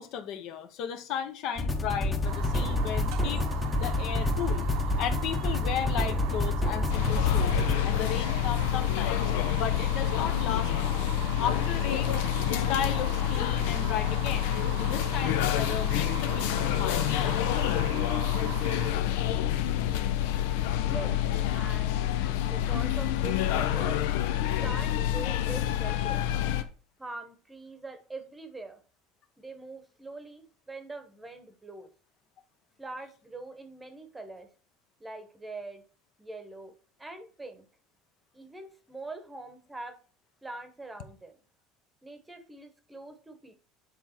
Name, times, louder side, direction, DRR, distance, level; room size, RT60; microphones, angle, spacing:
voice 1, 0.0-3.5 3.8-4.6 5.0-9.2 9.5-11.0 11.4-12.2 12.4-17.4 22.2-22.4, left 9 dB, 60° left, 0.8 m, -35 dB
sound 1, 1.6-7.7, left 2 dB, 15° left, 0.8 m, -28 dB
Fire, 2.2-18.9, right 9 dB, 70° right, 0.9 m, -40 dB
sound 2, 6.9-26.6, left 11 dB, 90° left, 0.6 m, -27 dB
voice 2, 20.8-21.2 21.5-22.1 22.4-24.0 24.6-26.2 27.0-28.8 29.4-31.9 32.8-34.5 35.0-35.8 36.2-36.7 37.0-37.7 38.3-40.0 40.4-41.3 42.0-43.5, right 2 dB, 10° right, 1.0 m, -43 dB
7.7 x 3.6 x 4.4 m
cardioid pair, 140°, 0 cm